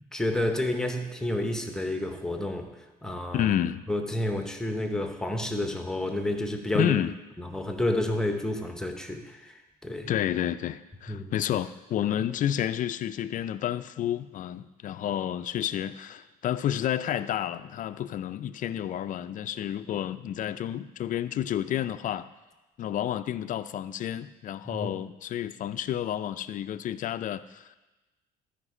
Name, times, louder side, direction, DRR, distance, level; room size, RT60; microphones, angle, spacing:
voice 1, 0.1-2.7 3.0-3.5 3.9-6.9 7.4-9.5 9.8-10.1 11.1-11.3 24.7-24.9, left 1 dB, 5° left, 5 dB, 0.9 m, -30 dB
voice 2, 3.3-3.8 6.7-7.2 10.1-22.3 22.8-27.8, left 11 dB, 50° left, 13 dB, 0.4 m, -30 dB
12.5 x 5.1 x 4.9 m, 1.1 s
cardioid pair, 110°, 17 cm